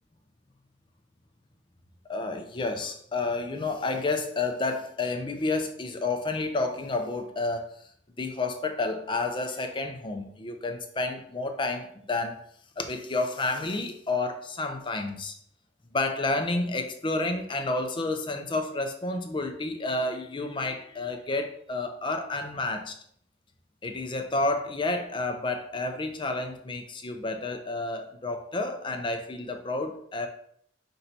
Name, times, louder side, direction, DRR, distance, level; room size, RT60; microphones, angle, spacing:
voice 1, 2.1-7.7 8.2-12.4 12.8-15.4 15.9-23.0 23.8-30.3, left 2 dB, 25° left, 5 dB, 0.5 m, -30 dB
4.4 x 2.7 x 4.1 m, 0.66 s
head